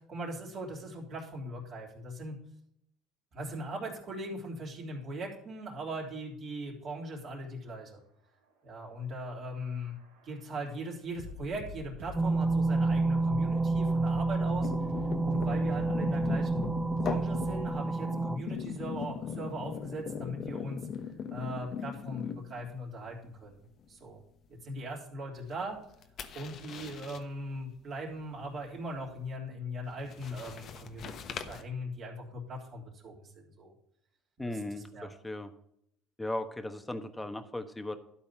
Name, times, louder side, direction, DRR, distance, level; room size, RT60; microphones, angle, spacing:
voice 1, 0.1-2.4 3.3-8.0 8.6-9.9 10.2-14.7 15.2-16.6 17.0-20.8 21.3-24.2 24.6-25.8 26.3-33.7 34.4-35.1, equal, 50° right, -2 dB, 3.2 m, -39 dB
sound 1, 9.4-17.8, left 1 dB, 85° right, 2.1 m, -46 dB
sound 2, 12.1-18.4, right 3 dB, 15° right, 0.4 m, -29 dB
sound 3, 14.6-22.8 23.1-23.4 25.7-27.2 29.9-31.6, left 7 dB, 50° left, 1.0 m, -39 dB
voice 2, 34.4-35.5 36.2-38.0, left 1 dB, 10° left, 9 dB, 1.2 m, -37 dB
12.0 x 4.2 x 7.2 m, 0.74 s
supercardioid pair, 90°, 0 cm